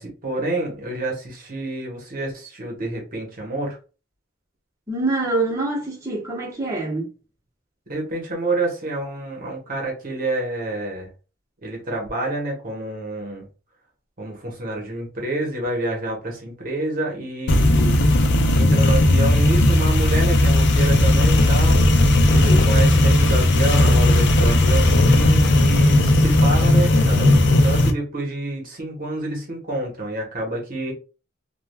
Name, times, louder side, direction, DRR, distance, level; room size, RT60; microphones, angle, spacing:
voice 1, 0.0-3.8 7.9-11.1 11.6-13.4 14.2-17.9 18.5-21.8 22.3-30.9, right 2 dB, 50° right, 1.0 m, -28 dB
voice 2, 4.9-7.1 22.3-22.7, right 2 dB, 15° right, 0.9 m, -25 dB
sound 1, 17.5-27.9, left 1 dB, 65° left, 0.4 m, -16 dB
3.1 x 2.3 x 2.2 m
head